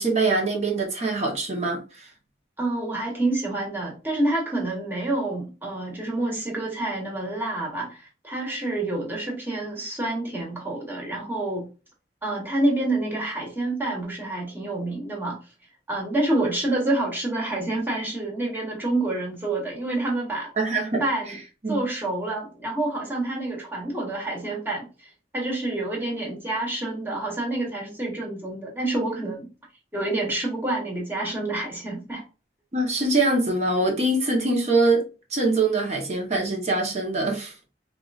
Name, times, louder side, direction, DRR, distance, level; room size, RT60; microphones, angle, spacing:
voice 1, 0.0-2.1 20.6-21.4 21.6-21.8 32.7-35.0 35.3-37.5, right 2 dB, 35° right, 0.9 m, -23 dB
voice 2, 2.6-11.6 12.2-15.4 15.9-20.5 21.0-21.4 21.7-29.5 29.9-32.2, right 2 dB, 10° right, 1.3 m, -28 dB
4.7 x 2.5 x 2.4 m
head